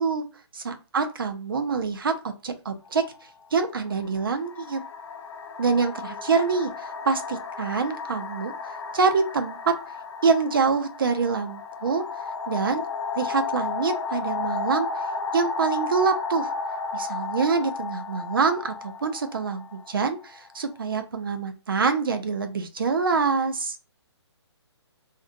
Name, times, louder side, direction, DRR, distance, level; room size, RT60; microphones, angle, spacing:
voice 1, 0.5-3.0 3.5-4.8 5.6-9.8 10.2-12.0 12.5-12.8 13.2-14.9 15.3-16.5 16.9-23.8, right 5 dB, 50° right, 8 dB, 0.4 m, -25 dB
sound 1, 2.9-3.0 4.0-20.6, left 4 dB, 85° left, 0.4 m, -33 dB
2.5 x 2.1 x 2.5 m, 0.32 s
hypercardioid pair, 175°, 15 cm